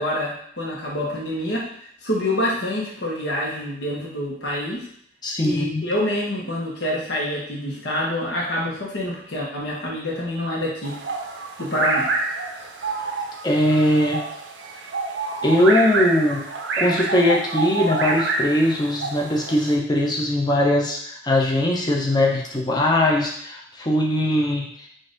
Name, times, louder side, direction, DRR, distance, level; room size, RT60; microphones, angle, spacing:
voice 1, 0.0-1.7 2.0-4.8 5.4-10.9 11.6-12.1, left 1 dB, 70° left, -3 dB, 1.1 m, -26 dB
voice 2, 5.2-5.8 13.4-14.2 15.4-16.5 16.8-24.6, left 1 dB, 25° left, -1 dB, 0.7 m, -20 dB
sound 1, 10.8-19.8, right 3 dB, 80° right, 0.5 m, -27 dB
3.8 x 2.6 x 3.8 m, 0.66 s
head